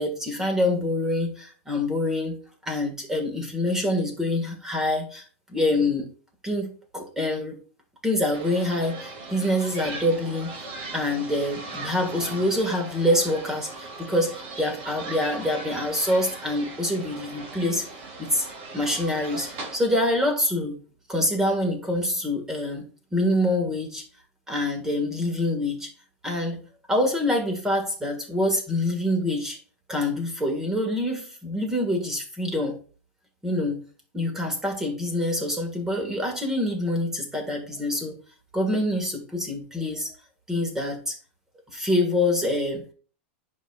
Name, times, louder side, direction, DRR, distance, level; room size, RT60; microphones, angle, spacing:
voice 1, 0.0-2.4 2.6-6.1 6.4-7.6 8.0-10.5 10.9-17.9 18.2-18.5 18.7-20.8 21.1-22.8 23.1-24.0 24.5-25.9 26.2-26.6 26.9-29.6 29.9-32.8 33.4-33.8 34.1-38.2 38.5-40.1 40.5-41.2 41.7-42.8, left 1 dB, 5° right, 1.7 m, -26 dB
sound 1, 8.3-19.8, right 3 dB, 50° right, 2.3 m, -39 dB
10.5 x 5.1 x 2.4 m
supercardioid pair, 160°, 7 cm